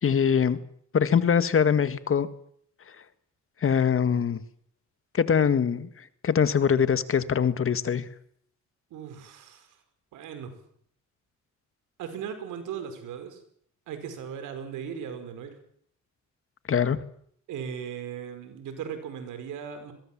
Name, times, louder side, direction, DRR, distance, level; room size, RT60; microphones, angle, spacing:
voice 1, 0.0-0.6 0.9-2.3 3.6-4.4 5.1-8.1 16.7-17.0, left 7 dB, 45° left, 13 dB, 1.8 m, -23 dB
voice 2, 8.9-9.8 10.1-10.6 12.0-13.4 13.9-15.6 17.5-19.9, right 7 dB, 85° right, 9 dB, 5.1 m, -37 dB
22.5 x 22.5 x 7.5 m, 0.64 s
cardioid pair, 90°, 30 cm